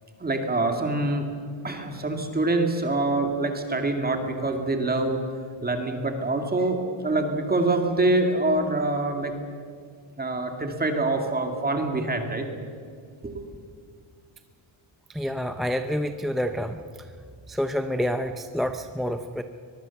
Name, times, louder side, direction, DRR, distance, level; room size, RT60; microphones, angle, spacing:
voice 1, 0.2-1.3 1.6-5.2 5.6-9.3 10.2-12.5 13.2-13.5, right 2 dB, 20° right, 4 dB, 2.1 m, -25 dB
voice 2, 15.1-16.8 17.5-19.4, equal, ahead, 7 dB, 0.5 m, -28 dB
23.5 x 21.5 x 7.1 m, 2.1 s
cardioid pair, 175°, 47 cm